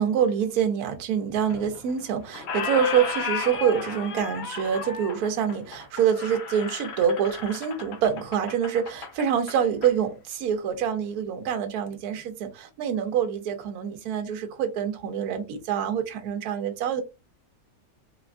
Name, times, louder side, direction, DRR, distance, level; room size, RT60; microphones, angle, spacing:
voice 1, 0.0-17.0, right 8 dB, 70° right, 1.1 m, -26 dB
Squeak, 1.5-2.0 2.3-9.9, left 6 dB, 60° left, 0.7 m, -34 dB
3.7 x 2.3 x 2.4 m
omnidirectional pair, 1.7 m